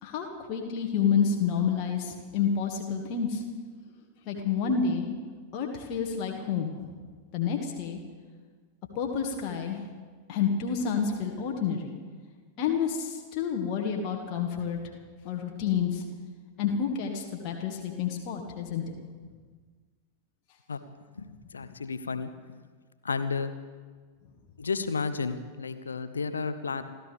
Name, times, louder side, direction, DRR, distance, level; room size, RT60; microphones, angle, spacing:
voice 1, 0.0-3.4 4.3-5.1 5.5-6.7 7.3-8.0 9.0-9.8 10.3-11.9 12.6-14.8 15.2-16.0 16.6-19.0, left 6 dB, 40° left, 1 dB, 1.7 m, -29 dB
voice 2, 21.2-22.3 23.0-23.5 24.6-26.8, left 4 dB, 75° left, 11 dB, 0.9 m, -32 dB
29.0 x 13.5 x 3.5 m, 1.5 s
figure-of-eight pair, 90°, 0 cm